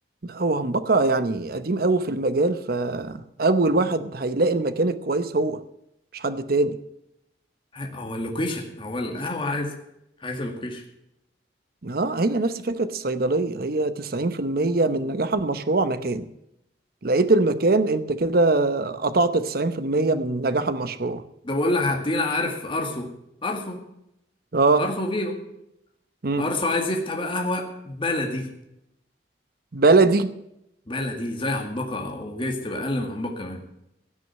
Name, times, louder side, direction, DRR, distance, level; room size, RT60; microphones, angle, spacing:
voice 1, 0.2-5.6 6.1-6.8 11.8-16.3 17.0-21.2 24.5-24.8 26.2-26.5 29.7-30.3, right 3 dB, 55° right, 13 dB, 0.9 m, -22 dB
voice 2, 7.7-9.8 10.2-10.8 21.4-23.1 23.4-23.8 24.8-25.4 26.4-28.5 30.9-33.6, left 2 dB, 30° left, 2 dB, 2.1 m, -27 dB
16.5 x 6.4 x 9.3 m, 0.82 s
head